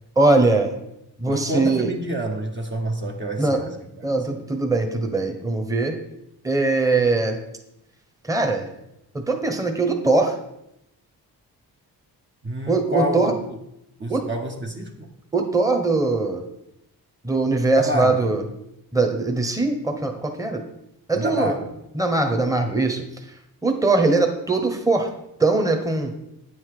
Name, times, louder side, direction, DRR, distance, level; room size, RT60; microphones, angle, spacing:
voice 1, 0.2-0.7 1.2-1.9 3.4-3.6 4.0-6.0 6.4-7.4 8.2-8.7 9.3-10.4 12.7-13.3 14.1-14.2 15.3-16.4 17.2-18.4 18.9-20.6 21.1-21.5 21.9-23.0 23.6-25.1 25.4-26.1, right 3 dB, 10° right, 4 dB, 1.1 m, -21 dB
voice 2, 1.3-3.7 4.0-4.1 12.4-13.3 14.0-15.1 17.8-18.2 21.1-21.7, right 1 dB, 30° right, 1 dB, 1.1 m, -28 dB
8.7 x 5.8 x 4.9 m, 0.84 s
cardioid pair, 75°, 38 cm